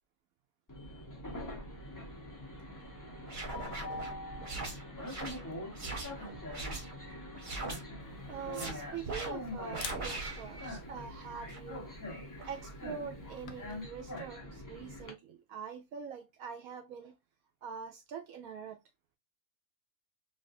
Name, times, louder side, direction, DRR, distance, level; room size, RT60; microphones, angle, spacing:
Train, 0.7-15.1, left 1 dB, 20° left, 0.5 m, -44 dB
sound 1, 3.2-7.0 7.3-7.8 8.3-8.7 9.1-9.3 9.7-10.9 11.4-11.6 12.4-12.6, right 3 dB, 40° right, 0.9 m, -41 dB
Camera, 8.0-13.8, left 6 dB, 85° left, 1.2 m, -51 dB
voice 1, 8.3-11.9 12.5-17.2 17.6-18.8, right 7 dB, 70° right, 0.9 m, -44 dB
3.3 x 2.7 x 2.5 m
omnidirectional pair, 1.7 m